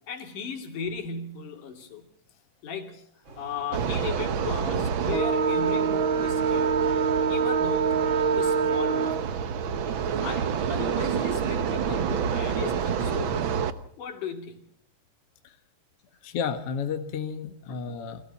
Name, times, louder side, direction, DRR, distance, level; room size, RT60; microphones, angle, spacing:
voice 1, 0.1-2.1 2.6-3.1 3.4-6.7 7.3-8.0 8.3-9.2 10.2-13.6 14.0-14.6 17.7-17.8, left 6 dB, 70° left, 4 dB, 4.2 m, -36 dB
sound 1, 3.2-11.1, equal, 35° right, 4.3 m, -48 dB
sound 2, 3.7-13.7, right 6 dB, 75° right, 1.1 m, -26 dB
voice 2, 16.2-18.2, left 6 dB, 50° left, 6 dB, 2.2 m, -32 dB
30.0 x 24.0 x 4.2 m, 0.68 s
omnidirectional pair, 3.8 m